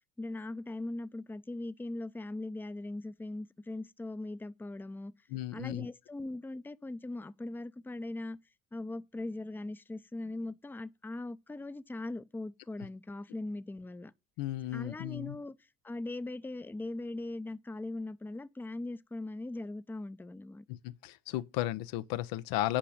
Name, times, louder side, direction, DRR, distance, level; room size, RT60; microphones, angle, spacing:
voice 1, 0.2-5.1 5.5-8.4 8.7-14.1 14.7-15.6 15.8-20.7, left 2 dB, 5° left, 0.5 m, -40 dB
voice 2, 5.3-5.9 14.4-15.4 20.7-22.8, left 15 dB, 80° left, 0.7 m, -34 dB
10.0 x 5.0 x 7.1 m
supercardioid pair, 75°, 34 cm